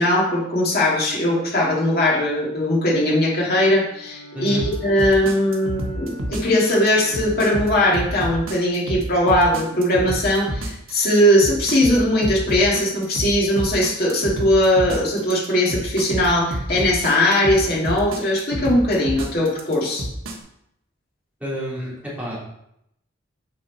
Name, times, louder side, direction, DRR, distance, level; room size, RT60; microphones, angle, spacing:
voice 1, 0.0-20.1, left 1 dB, 50° left, -4 dB, 2.6 m, -19 dB
Bowed string instrument, 2.8-8.1, left 1 dB, 35° right, 3.1 m, -44 dB
sound 1, 4.6-20.4, right 1 dB, 90° right, 1.4 m, -29 dB
voice 2, 21.4-22.4, equal, 10° right, -8 dB, 3.0 m, -29 dB
8.9 x 5.4 x 4.1 m, 0.78 s
head